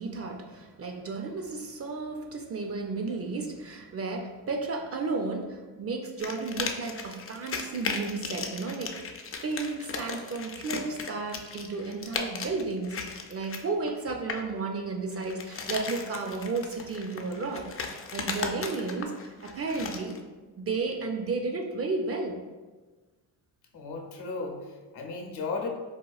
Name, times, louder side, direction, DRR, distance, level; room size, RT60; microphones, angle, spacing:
voice 1, 0.0-9.1 9.4-17.7 18.1-20.2 20.6-22.4, right 3 dB, 35° right, 3 dB, 0.4 m, -33 dB
sound 1, 6.2-14.5 15.1-20.2, left 5 dB, 35° left, 0.4 m, -37 dB
voice 2, 23.7-25.7, left 4 dB, 65° left, 2 dB, 0.7 m, -35 dB
4.2 x 2.3 x 2.3 m, 1.3 s
supercardioid pair, 60°, 43 cm